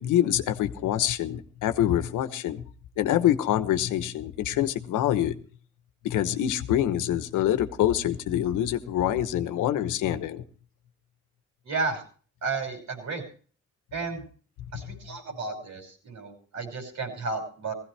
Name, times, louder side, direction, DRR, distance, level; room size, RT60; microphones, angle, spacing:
voice 1, 0.0-2.6 3.0-5.3 6.0-10.4 14.8-14.9, left 11 dB, 85° left, 11 dB, 1.1 m, -25 dB
voice 2, 11.6-12.0 12.4-13.2 13.9-14.2 14.7-17.7, right 4 dB, 65° right, 3 dB, 5.8 m, -32 dB
17.0 x 15.5 x 3.3 m, 0.41 s
cardioid pair, 90°, 30 cm